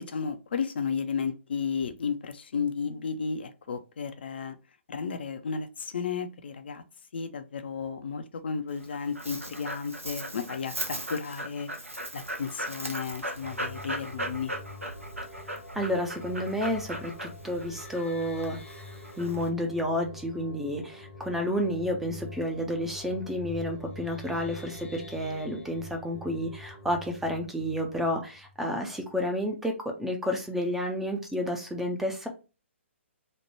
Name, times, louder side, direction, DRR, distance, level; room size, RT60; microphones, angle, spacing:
voice 1, 0.0-4.6 4.9-6.8 7.1-11.7 12.1-14.5, left 6 dB, 50° left, 0.4 m, -33 dB
Dog, 8.7-19.5, right 1 dB, 85° right, 0.8 m, -38 dB
sound 1, 13.4-28.9, left 2 dB, 70° left, 1.0 m, -45 dB
voice 2, 15.7-18.6 19.2-32.3, equal, 5° right, 0.5 m, -30 dB
3.1 x 2.1 x 4.2 m
figure-of-eight pair, 130°, 7 cm